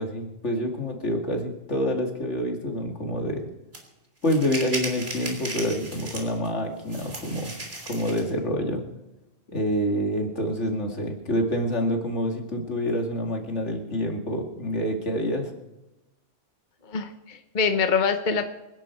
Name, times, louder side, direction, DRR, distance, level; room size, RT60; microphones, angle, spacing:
voice 1, 0.0-3.4 4.2-7.5 7.9-8.8 9.5-15.5, equal, 70° left, 2 dB, 2.7 m, -27 dB
sound 1, 3.7-3.8 4.2-6.5 6.9-8.3, right 1 dB, 55° right, 3.5 m, -35 dB
voice 2, 16.9-18.5, left 5 dB, 40° left, 7 dB, 1.1 m, -25 dB
25.5 x 10.5 x 4.6 m, 0.99 s
omnidirectional pair, 1.3 m